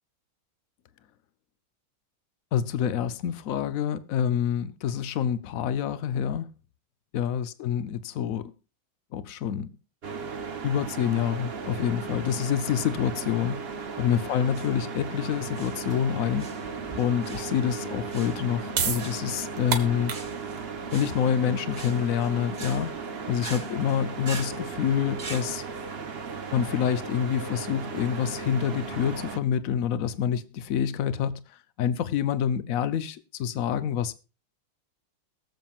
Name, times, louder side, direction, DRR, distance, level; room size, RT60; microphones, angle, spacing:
voice 1, 2.5-6.5 7.1-8.5 9.1-9.7 10.6-13.6 14.0-16.5 17.0-20.1 20.9-22.9 23.3-25.6 26.5-31.4 31.8-34.1, left 9 dB, 75° left, 0.7 m, -27 dB
sound 1, 10.0-29.4, right 5 dB, 45° right, 0.8 m, -36 dB
sound 2, 14.4-25.5, right 4 dB, 25° right, 1.1 m, -43 dB
sound 3, 18.7-25.0, right 7 dB, 80° right, 2.3 m, -35 dB
22.0 x 7.4 x 2.4 m
omnidirectional pair, 2.3 m